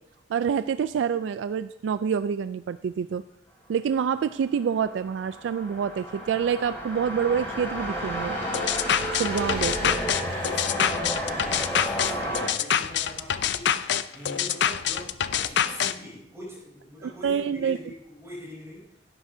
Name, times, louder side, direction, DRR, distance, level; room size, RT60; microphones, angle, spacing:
voice 1, 0.3-3.2 3.7-8.4 9.1-10.0 17.2-17.8, right 7 dB, 85° right, 13 dB, 0.3 m, -27 dB
sound 1, 4.5-12.5, equal, 15° left, 4.8 m, -32 dB
sound 2, 8.5-15.9, left 9 dB, 70° left, 0.4 m, -26 dB
voice 2, 10.1-13.7 14.1-19.1, equal, 15° right, -8 dB, 4.4 m, -43 dB
16.0 x 11.5 x 2.7 m, 0.83 s
head